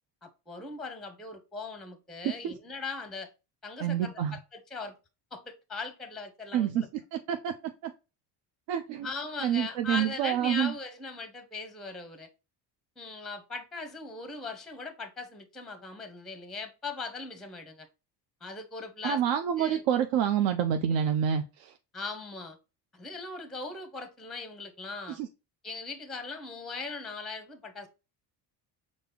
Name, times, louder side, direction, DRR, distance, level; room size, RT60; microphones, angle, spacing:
voice 1, 0.2-3.3 3.6-4.9 5.3-6.9 9.0-12.3 13.0-17.9 18.4-19.2 19.6-19.8 21.9-22.6 22.9-25.2 25.6-27.9, left 3 dB, ahead, 0.6 m, -39 dB
voice 2, 3.8-4.4 6.5-6.8 7.1-7.5 7.8-7.9 8.7-9.1 9.4-10.7 19.0-21.7 25.1-25.3, right 9 dB, 65° right, 0.6 m, -27 dB
5.2 x 2.0 x 3.5 m
supercardioid pair, 90°, 49 cm